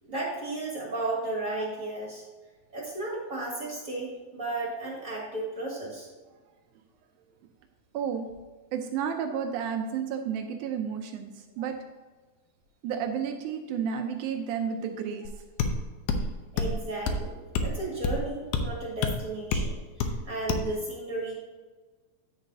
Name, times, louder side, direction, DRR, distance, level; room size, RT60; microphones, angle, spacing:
voice 1, 0.0-2.2 2.7-6.1 16.5-21.3, right 2 dB, 30° right, -5 dB, 1.9 m, -34 dB
voice 2, 7.9-8.3 8.7-11.8 12.8-15.3, right 7 dB, 90° right, 5 dB, 1.7 m, -31 dB
sound 1, 15.3-15.4 15.6-15.8 16.1-16.3 16.6-16.8 17.1-17.2 17.6-17.7 18.0-18.2 18.5-18.7 19.0-19.2 19.5-19.7 20.0-20.2 20.5-20.7, left 4 dB, 80° left, 2.4 m, -27 dB
10.5 x 7.9 x 2.8 m, 1.3 s
omnidirectional pair, 4.2 m